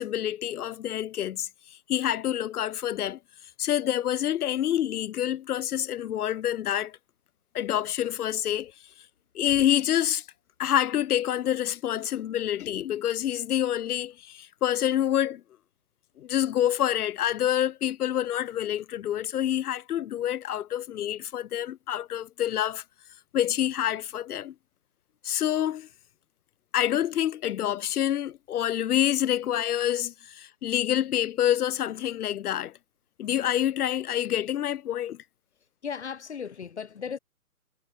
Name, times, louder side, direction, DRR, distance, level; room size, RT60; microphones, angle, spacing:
voice 1, 0.0-3.2 3.6-7.0 7.5-8.7 9.3-10.2 10.6-15.4 16.2-22.8 23.3-24.5 25.2-25.9 26.7-32.7 33.2-35.2, left 11 dB, 85° left, 0.6 m, -27 dB
voice 2, 35.8-37.2, left 7 dB, 50° left, 4.6 m, -36 dB
hypercardioid pair, 175°, 44 cm